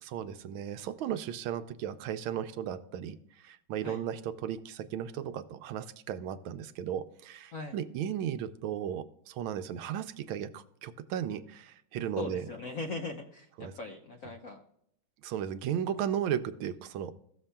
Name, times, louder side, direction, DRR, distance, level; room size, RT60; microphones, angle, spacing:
voice 1, 0.0-12.5 13.6-13.7 15.2-17.1, right 9 dB, 80° right, 11 dB, 1.4 m, -35 dB
voice 2, 12.2-14.6, left 3 dB, 60° left, 3 dB, 0.9 m, -39 dB
15.5 x 7.2 x 2.2 m, 0.72 s
omnidirectional pair, 2.2 m